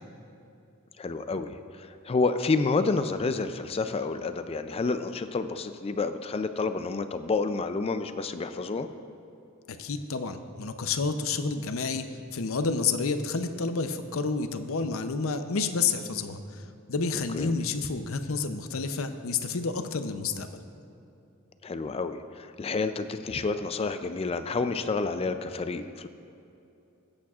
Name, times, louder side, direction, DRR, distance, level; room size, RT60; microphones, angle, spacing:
voice 1, 1.0-8.9 17.3-17.5 21.6-26.1, left 3 dB, 30° left, 10 dB, 0.4 m, -29 dB
voice 2, 9.7-12.0 12.3-16.6 16.9-20.5, left 4 dB, 75° left, 8 dB, 0.6 m, -29 dB
19.5 x 8.6 x 2.4 m, 2.8 s
head